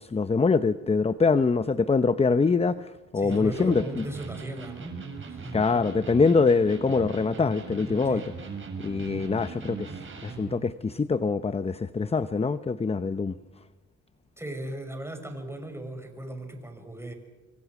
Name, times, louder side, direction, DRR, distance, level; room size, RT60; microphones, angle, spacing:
voice 1, 0.0-4.0 5.5-8.2 8.8-9.9 10.2-13.3, left 4 dB, 20° left, 0.8 m, -24 dB
voice 2, 3.2-5.0 5.2-5.6 8.1-8.2 14.4-17.1, right 1 dB, 10° right, 5.8 m, -37 dB
Electric guitar, 3.3-10.6, right 5 dB, 40° right, 6.6 m, -39 dB
26.5 x 24.0 x 6.1 m
cardioid pair, 90°, 30 cm